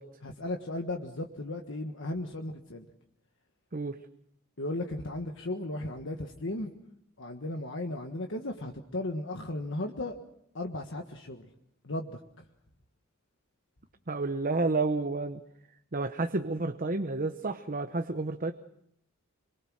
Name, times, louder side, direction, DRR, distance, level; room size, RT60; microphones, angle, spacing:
voice 1, 0.2-2.9 4.6-6.8 7.2-10.2 10.5-11.5 11.8-12.2, left 1 dB, 60° left, 3 dB, 1.5 m, -35 dB
voice 2, 3.7-4.1 14.1-15.4 15.9-18.5, right 3 dB, 40° right, 7 dB, 0.9 m, -30 dB
26.5 x 23.0 x 6.4 m, 0.74 s
head